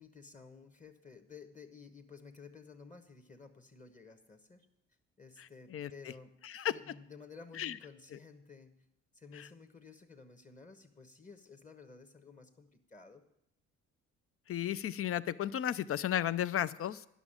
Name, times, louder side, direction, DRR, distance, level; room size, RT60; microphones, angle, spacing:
voice 1, 0.0-4.7 5.2-6.4 6.7-8.8 9.1-13.2, left 5 dB, 25° left, 6 dB, 1.2 m, -54 dB
voice 2, 5.4-5.9 6.4-6.7 7.6-7.8 9.4-9.5 14.5-17.1, left 10 dB, 50° left, 16 dB, 0.5 m, -34 dB
11.0 x 6.1 x 8.8 m, 0.80 s
cardioid pair, 90°, 30 cm